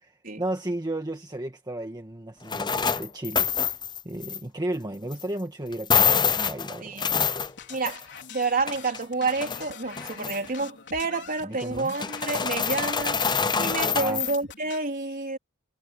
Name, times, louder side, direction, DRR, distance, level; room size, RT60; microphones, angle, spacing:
voice 1, 0.0-3.8 4.0-7.0 11.4-12.0 13.9-14.2, right 1 dB, 20° right, 1.6 m, -34 dB
sound 1, 2.5-4.4 5.1-5.2 5.7-8.2 8.4-9.6 10.0-10.5 11.8-14.4, left 6 dB, 20° left, 0.7 m, -26 dB
voice 2, 6.8-7.1 7.7-8.0 8.3-13.2 13.6-15.4, right 3 dB, 40° right, 3.9 m, -29 dB
sound 2, 7.1-14.8, left 6 dB, 55° left, 4.5 m, -45 dB
head